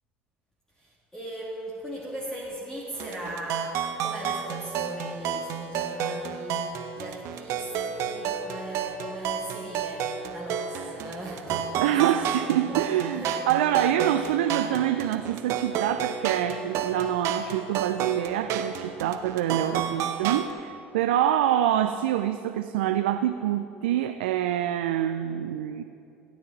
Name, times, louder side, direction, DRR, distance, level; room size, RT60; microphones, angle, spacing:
voice 1, 0.8-12.2 12.7-13.5 19.6-19.9, equal, 10° left, -5 dB, 2.3 m, -39 dB
sound 1, 2.9-20.5, right 7 dB, 60° right, 0.8 m, -31 dB
voice 2, 11.8-25.8, right 11 dB, 75° right, 8 dB, 0.4 m, -26 dB
15.5 x 9.5 x 4.0 m, 2.7 s
hypercardioid pair, 65°, 5 cm